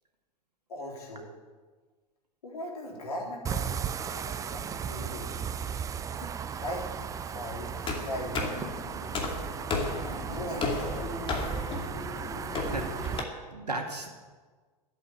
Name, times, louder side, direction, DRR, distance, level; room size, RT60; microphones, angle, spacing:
voice 1, 0.7-1.3 2.4-5.3 6.1-8.6 10.0-11.3, left 1 dB, 70° left, 0 dB, 3.6 m, -39 dB
sound 1, 3.5-13.2, right 7 dB, 15° right, 0.5 m, -36 dB
sound 2, 7.8-13.2, left 3 dB, 25° left, 2.5 m, -34 dB
voice 2, 12.5-14.1, right 2 dB, 80° right, 3 dB, 2.0 m, -37 dB
13.5 x 8.1 x 9.8 m, 1.4 s
figure-of-eight pair, 90°, 20 cm